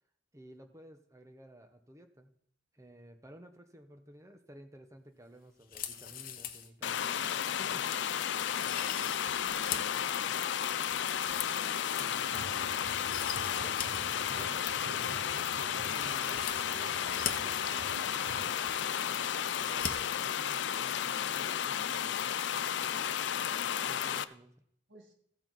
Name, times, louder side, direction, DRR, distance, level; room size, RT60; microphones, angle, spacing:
voice 1, 0.3-2.4 2.7-8.4 12.0-12.5 13.5-15.2 15.9-17.0 17.7-22.4 23.8-24.6, right 1 dB, 15° right, 6 dB, 1.0 m, -55 dB
sound 1, 5.6-6.7 7.1-7.2 7.7-7.9 8.3-10.0 10.4-12.5 12.9-13.9 14.1-14.2 16.2-17.3 18.1-18.2 18.4-19.1 19.4-19.9 20.2-20.3, left 9 dB, 45° left, 0.9 m, -41 dB
sound 2, 6.8-24.2, left 9 dB, 65° left, 0.4 m, -33 dB
voice 2, 9.2-10.4 24.9-25.1, right 2 dB, 75° right, 2 dB, 1.8 m, -58 dB
sound 3, 12.3-18.6, right 4 dB, 55° right, 0.5 m, -48 dB
15.5 x 6.9 x 4.1 m, 0.68 s
head